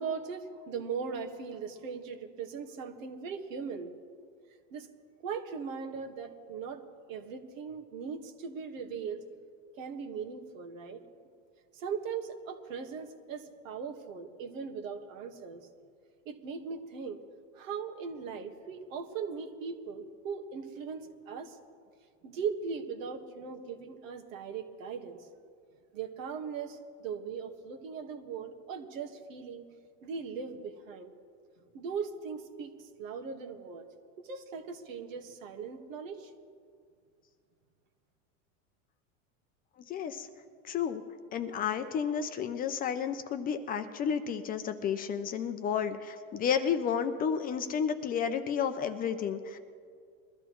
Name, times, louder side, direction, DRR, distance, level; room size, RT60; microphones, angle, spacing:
voice 1, 0.0-3.9 4.7-4.9 5.2-6.8 7.1-9.2 9.8-11.0 11.7-15.7 16.2-17.2 17.5-21.6 22.2-25.3 25.9-29.6 30.0-31.1 31.7-33.9 34.2-36.3, right 6 dB, 80° right, 6 dB, 1.6 m, -39 dB
voice 2, 39.9-40.3 40.6-41.0 41.3-49.6, left 7 dB, 25° left, 9 dB, 0.5 m, -31 dB
22.0 x 13.0 x 3.1 m, 2.2 s
supercardioid pair, 140°, 39 cm